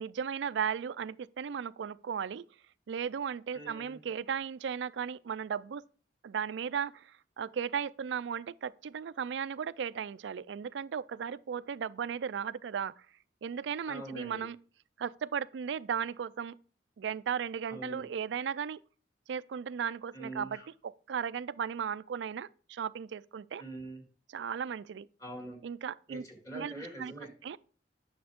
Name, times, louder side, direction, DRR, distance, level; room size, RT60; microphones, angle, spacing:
voice 1, 0.0-2.5 2.9-5.8 6.2-13.1 13.4-14.6 15.0-16.6 17.0-18.8 19.3-23.6 24.3-25.1 25.6-26.2 26.5-27.1 27.4-27.6, right 7 dB, 75° right, 0.4 m, -36 dB
voice 2, 3.5-4.0 13.9-14.5 17.7-18.1 20.1-20.7 23.6-24.0 25.2-25.6 26.1-27.3, right 1 dB, 20° left, 2.0 m, -44 dB
9.5 x 6.7 x 3.5 m
head